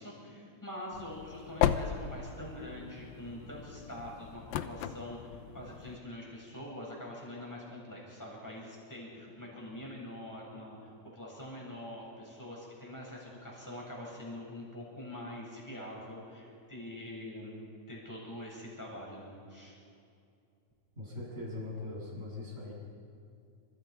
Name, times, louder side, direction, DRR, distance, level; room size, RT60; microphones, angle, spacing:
voice 1, 0.0-17.6 17.9-19.8, left 1 dB, 5° left, -3 dB, 7.8 m, -44 dB
sound 1, 0.9-6.0, left 10 dB, 85° left, 2.7 m, -36 dB
voice 2, 21.0-22.7, left 2 dB, 15° right, -4 dB, 7.9 m, -41 dB
28.5 x 27.0 x 5.5 m, 2.5 s
omnidirectional pair, 4.1 m